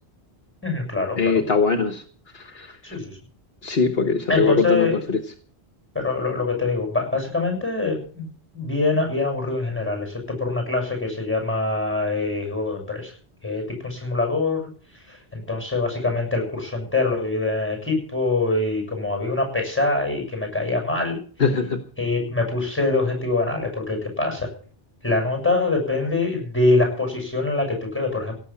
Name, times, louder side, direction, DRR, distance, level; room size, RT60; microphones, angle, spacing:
voice 1, 0.6-1.4 2.9-3.2 4.3-5.0 6.0-8.3 8.5-13.1 13.4-21.2 22.0-24.5 25.0-28.3, left 3 dB, 10° left, 3 dB, 7.0 m, -24 dB
voice 2, 1.2-2.0 2.3-3.0 3.6-5.2 21.4-21.8, left 4 dB, 65° left, 7 dB, 1.5 m, -22 dB
17.0 x 7.5 x 8.6 m, 0.44 s
omnidirectional pair, 1.1 m